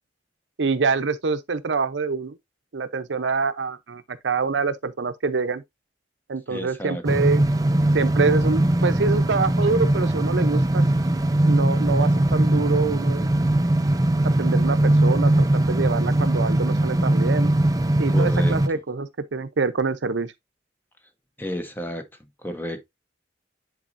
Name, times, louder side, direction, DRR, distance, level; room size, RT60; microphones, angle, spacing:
voice 1, 0.6-2.4 2.7-5.6 6.3-7.4 7.9-10.9 11.4-13.3 14.2-17.5 18.0-20.3, right 4 dB, 90° right, 0.7 m, -25 dB
voice 2, 6.5-7.0 18.1-18.6 21.4-22.1 22.4-22.8, equal, 10° left, 0.8 m, -31 dB
sound 1, 7.0-18.7, right 1 dB, 20° right, 0.4 m, -20 dB
10.0 x 4.1 x 2.6 m
head